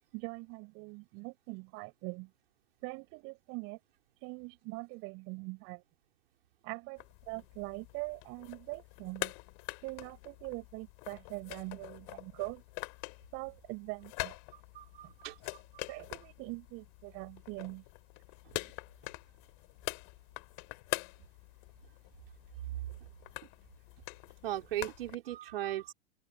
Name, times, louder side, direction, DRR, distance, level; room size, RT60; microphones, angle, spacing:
voice 1, 0.1-2.3 2.8-3.8 4.2-5.8 6.6-9.3 9.8-12.6 13.3-14.4 15.0-15.1 15.9-17.8, right 29 dB, 40° right, 5.2 m, -42 dB
sound 1, 7.0-25.2, left 40 dB or more, 45° left, 3.1 m, -45 dB
voice 2, 14.5-15.8 22.6-22.8 24.4-25.9, right 13 dB, 55° right, 4.9 m, -38 dB
open air
figure-of-eight pair, 95°, 34 cm